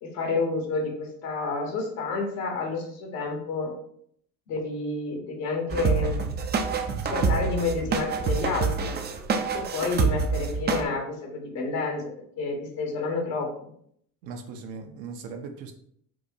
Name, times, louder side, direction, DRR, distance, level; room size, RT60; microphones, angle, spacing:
voice 1, 0.0-3.7 4.5-6.2 7.0-9.0 9.5-12.0 12.4-13.5, left 3 dB, 70° left, 1 dB, 1.2 m, -29 dB
sound 1, 5.7-10.8, right 5 dB, 25° right, 0.4 m, -26 dB
voice 2, 14.2-15.7, right 5 dB, 65° right, 4 dB, 0.7 m, -38 dB
4.5 x 2.1 x 2.7 m, 0.66 s
hypercardioid pair, 70°, 44 cm